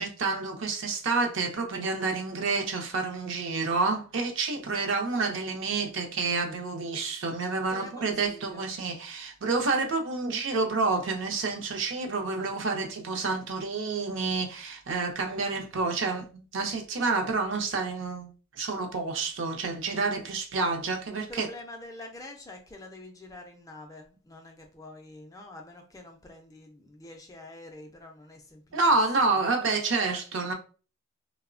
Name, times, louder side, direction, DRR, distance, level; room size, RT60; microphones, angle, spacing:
voice 1, 0.0-21.5 28.7-30.5, right 3 dB, 60° right, 0.5 m, -29 dB
voice 2, 7.7-8.7 21.1-28.9 29.3-29.5, left 2 dB, 15° left, 0.3 m, -46 dB
2.9 x 2.0 x 2.4 m
head